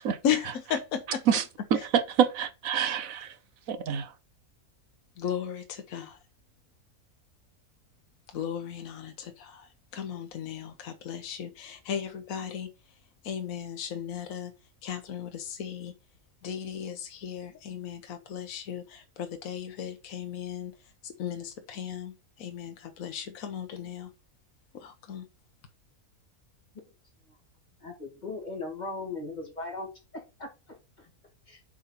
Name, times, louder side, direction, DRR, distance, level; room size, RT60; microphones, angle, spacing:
voice 1, 0.2-1.2 5.2-6.2 8.3-12.7 13.2-14.5 14.8-15.9 16.4-20.7 21.0-24.1 24.7-25.3, left 8 dB, 70° left, 1.3 m, -35 dB
voice 2, 1.7-3.3 3.7-4.1, right 8 dB, 70° right, 1.2 m, -26 dB
voice 3, 27.8-31.1 31.5-31.6, left 3 dB, 30° left, 2.4 m, -39 dB
7.3 x 3.8 x 5.7 m
omnidirectional pair, 1.5 m